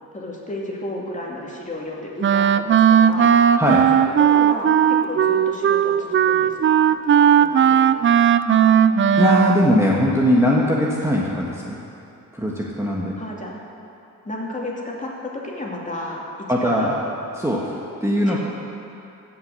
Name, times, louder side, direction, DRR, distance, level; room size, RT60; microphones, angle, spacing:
voice 1, 0.1-3.4 4.2-7.0 7.4-8.0 13.2-13.5 14.2-17.0 18.3-18.4, left 1 dB, 20° left, -2 dB, 2.7 m, -32 dB
Wind instrument woodwind instrument, 2.2-9.7, right 9 dB, 35° right, 0.4 m, -16 dB
voice 2, 3.6-4.0 9.2-11.8 12.3-13.1 16.5-17.0 17.3-18.4, equal, 10° right, -4 dB, 1.6 m, -20 dB
16.0 x 6.1 x 6.9 m, 2.8 s
supercardioid pair, 65°, 36 cm